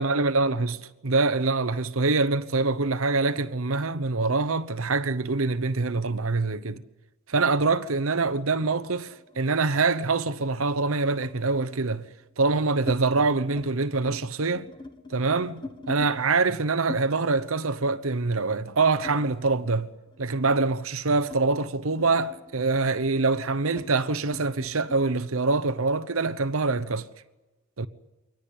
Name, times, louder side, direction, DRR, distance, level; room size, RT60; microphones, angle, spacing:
voice 1, 0.0-6.8 7.3-12.1 12.4-14.7 15.1-27.1 27.8-27.9, right 3 dB, 75° right, 1.0 m, -25 dB
sound 1, 9.2-9.9 11.2-11.5 12.2-13.0 13.4-13.7 14.0-16.1 16.9-19.8 20.1-25.1, left 2 dB, 20° left, 1.4 m, -43 dB
23.5 x 19.0 x 8.7 m
head